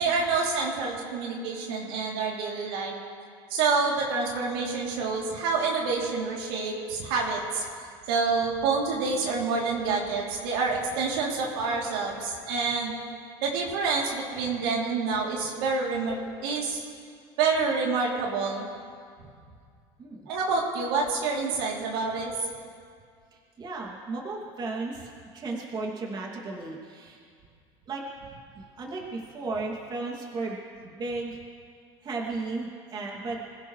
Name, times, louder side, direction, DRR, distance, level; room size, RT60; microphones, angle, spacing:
voice 1, 0.0-2.9 3.5-7.6 8.1-12.9 13.4-16.8 17.4-18.6 20.3-22.3, right 4 dB, 85° right, -2 dB, 3.3 m, -27 dB
voice 2, 23.6-27.2 27.9-28.0 28.6-30.6 30.8-31.4 32.0-33.4, right 3 dB, 35° right, -2 dB, 2.7 m, -34 dB
26.0 x 16.0 x 3.3 m, 2.2 s
supercardioid pair, 125°, 12 cm